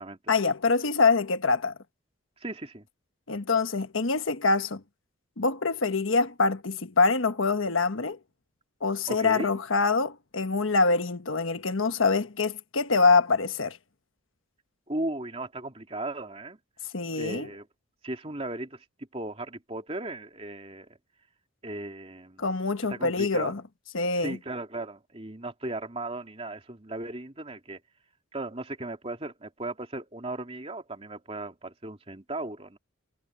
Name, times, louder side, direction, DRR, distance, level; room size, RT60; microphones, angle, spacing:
voice 1, 0.3-1.7 3.3-4.8 5.4-8.2 8.8-13.8 16.9-17.5 22.4-23.6 23.9-24.4, left 4 dB, 80° left, 1.2 m, -25 dB
voice 2, 2.4-2.9 9.1-9.5 14.9-16.6 17.1-17.7 18.0-18.8 19.1-21.0 21.6-22.5 22.9-23.5 24.1-27.8 28.3-32.8, right 2 dB, 30° right, 2.9 m, -36 dB
head